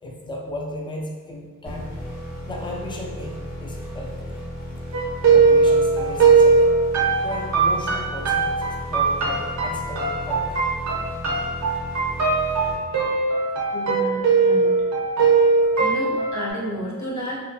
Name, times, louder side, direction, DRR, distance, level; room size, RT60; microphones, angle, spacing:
voice 1, 0.0-1.9 2.5-3.4 3.6-4.4 5.3-6.6 7.2-10.7, left 1 dB, 15° left, -1 dB, 0.4 m, -35 dB
sound 1, 1.6-13.4, equal, 80° left, 1.4 m, -35 dB
sound 2, 4.9-16.5, right 4 dB, 55° right, 0.6 m, -19 dB
voice 2, 13.7-14.7 15.8-17.4, equal, 55° left, -5 dB, 0.8 m, -31 dB
2.7 x 2.1 x 2.7 m, 1.4 s
wide cardioid pair, 100°, 34 cm